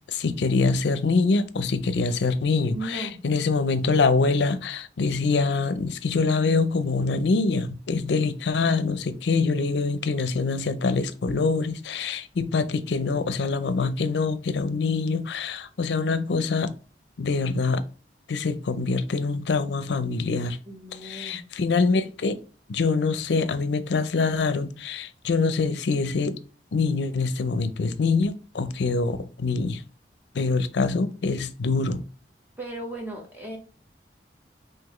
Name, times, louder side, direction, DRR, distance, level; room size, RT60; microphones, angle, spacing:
voice 1, 0.1-16.7 17.2-17.8 18.3-20.6 21.0-22.4 22.7-26.4 26.7-29.8 30.3-32.0, left 4 dB, 80° left, 0.5 m, -24 dB
voice 2, 2.6-3.2 20.7-21.4 32.6-33.6, right 2 dB, 10° right, 0.9 m, -36 dB
5.8 x 2.7 x 3.0 m
head